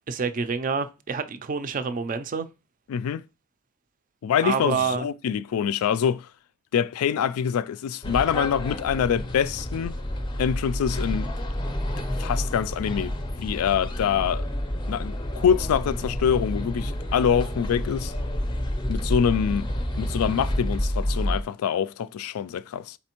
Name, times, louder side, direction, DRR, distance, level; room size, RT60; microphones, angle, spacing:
voice 1, 0.1-2.5 4.4-5.1, right 5 dB, 40° right, 0.4 m, -27 dB
voice 2, 2.9-3.2 4.2-6.3 6.7-10.0 10.4-11.3 12.2-14.5 14.9-18.1 18.9-19.7 20.0-23.0, left 8 dB, 85° left, 0.3 m, -25 dB
sound 1, 8.0-21.4, equal, 20° left, 0.5 m, -29 dB
4.2 x 4.1 x 2.9 m
head